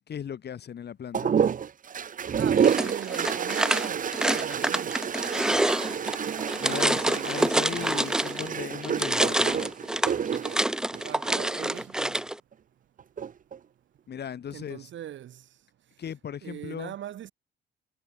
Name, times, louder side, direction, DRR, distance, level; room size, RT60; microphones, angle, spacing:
voice 1, 0.1-1.3 6.6-9.7 14.1-14.9 16.0-16.9, left 8 dB, 55° left, 3.9 m, -37 dB
sound 1, 1.1-11.8 13.0-13.6, right 7 dB, 40° right, 1.0 m, -29 dB
voice 2, 2.4-5.0 6.6-7.8 11.0-12.2 14.5-15.4 16.4-17.3, right 11 dB, 70° right, 2.2 m, -40 dB
sound 2, 2.6-8.5 8.8-12.3, right 1 dB, 5° right, 0.3 m, -27 dB
cardioid pair, 90°, 20 cm